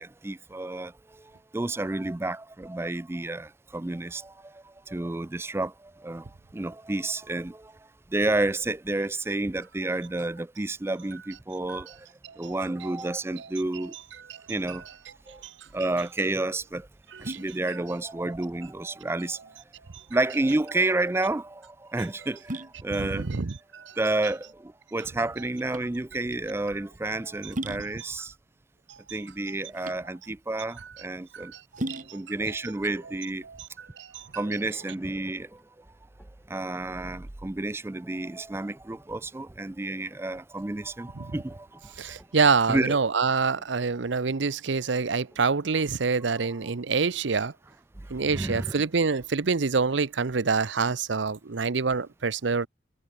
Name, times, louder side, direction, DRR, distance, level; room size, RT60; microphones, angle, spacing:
voice 1, 0.0-7.7 8.1-12.1 12.4-13.9 14.5-14.8 15.3-15.4 15.7-16.9 17.2-19.4 20.1-23.3 24.0-28.3 29.1-31.5 32.1-33.4 34.4-35.6 36.5-42.2 42.7-43.0 48.2-48.8, right 2 dB, 15° right, 0.4 m, -30 dB
sound 1, 15.7-34.2, right 1 dB, 40° right, 2.4 m, -42 dB
voice 2, 22.9-24.0 28.9-29.2 31.3-31.6 31.9-32.2 33.5-34.3 41.2-41.3 42.0-47.5 48.1-52.7, right 4 dB, 70° right, 0.7 m, -26 dB
sound 2, 34.8-45.9, equal, 5° left, 4.5 m, -61 dB
head